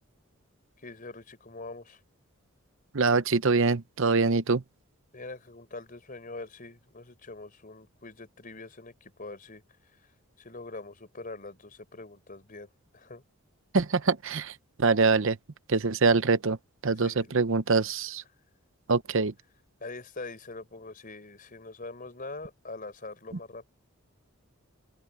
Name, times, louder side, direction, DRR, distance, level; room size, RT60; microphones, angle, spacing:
voice 1, 0.8-2.0 5.1-9.6 10.4-13.2 17.0-17.4 19.8-23.6, left 3 dB, 40° left, 4.4 m, -43 dB
voice 2, 2.9-4.6 13.7-14.5 14.8-15.4 15.7-16.6 16.8-18.2 18.9-19.3, right 4 dB, 60° right, 0.8 m, -24 dB
open air
head